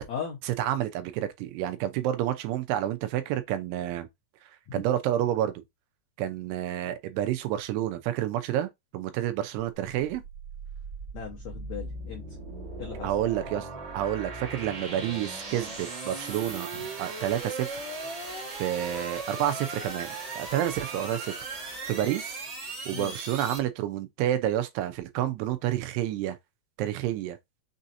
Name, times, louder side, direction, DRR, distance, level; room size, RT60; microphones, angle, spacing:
voice 1, 0.4-4.1 4.7-5.5 6.2-10.2 13.0-13.7 13.9-16.7 17.0-17.8 18.6-21.3 21.9-22.4 22.9-26.4 26.8-27.4, right 12 dB, 85° right, 2.8 m, -29 dB
sound 1, 10.1-23.6, right 3 dB, 55° right, 1.2 m, -38 dB
voice 2, 11.1-12.2 12.8-13.1 22.9-23.1, left 7 dB, 85° left, 1.5 m, -37 dB
6.4 x 2.8 x 2.6 m
omnidirectional pair, 4.7 m